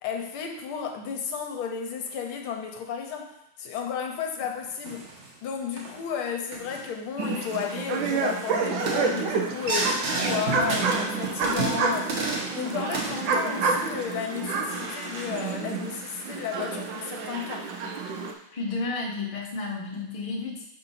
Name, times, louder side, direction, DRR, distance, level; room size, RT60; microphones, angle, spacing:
voice 1, 0.0-3.3 3.6-5.1 5.4-12.1 12.5-17.7, left 7 dB, 85° left, 3 dB, 1.6 m, -33 dB
sound 1, 4.8-5.3 5.7-6.0 6.5-6.9 7.3-7.6 7.9-8.2 8.7-12.6 12.9-14.0 14.5-15.5, right 3 dB, 50° right, 1.0 m, -32 dB
sound 2, 7.2-18.3, right 4 dB, 75° right, 1.3 m, -29 dB
voice 2, 10.5-10.8 18.5-20.6, left 3 dB, 25° left, -4 dB, 0.7 m, -32 dB
6.7 x 2.6 x 5.6 m, 0.83 s
omnidirectional pair, 2.3 m